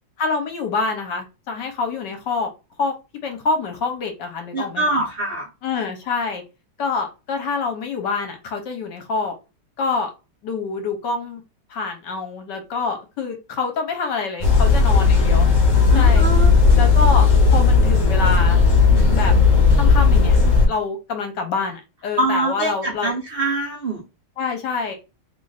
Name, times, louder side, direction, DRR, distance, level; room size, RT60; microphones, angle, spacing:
voice 1, 0.2-2.5 2.8-2.9 3.2-5.0 5.6-6.4 6.8-9.3 9.8-10.1 10.4-11.4 11.7-15.5 15.9-16.3 16.7-18.6 19.1-19.3 19.8-20.4 20.7-23.1 24.4-24.9, left 4 dB, 65° left, 1.2 m, -26 dB
voice 2, 4.5-5.5 15.9-16.5 22.2-24.0, right 2 dB, 80° right, 0.5 m, -24 dB
sound 1, 14.4-20.7, left 4 dB, 35° left, 0.7 m, -15 dB
3.2 x 2.5 x 4.0 m
omnidirectional pair, 2.3 m